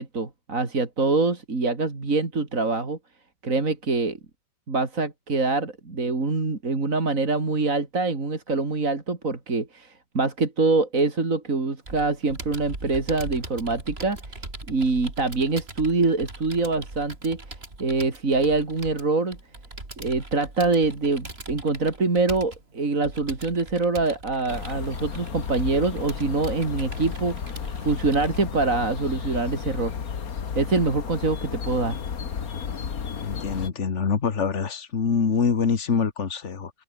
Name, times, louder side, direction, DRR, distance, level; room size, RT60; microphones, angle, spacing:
voice 1, 0.0-3.0 3.4-4.2 4.7-14.4 14.7-17.4 17.8-19.4 20.0-29.9 30.6-32.0, right 3 dB, 65° right, 3.7 m, -25 dB
Computer keyboard, 11.9-28.4, right 2 dB, 40° right, 4.5 m, -41 dB
sound 1, 24.5-33.7, left 6 dB, 75° left, 2.1 m, -33 dB
voice 2, 33.2-36.7, left 5 dB, 50° left, 2.0 m, -25 dB
omnidirectional pair, 1.5 m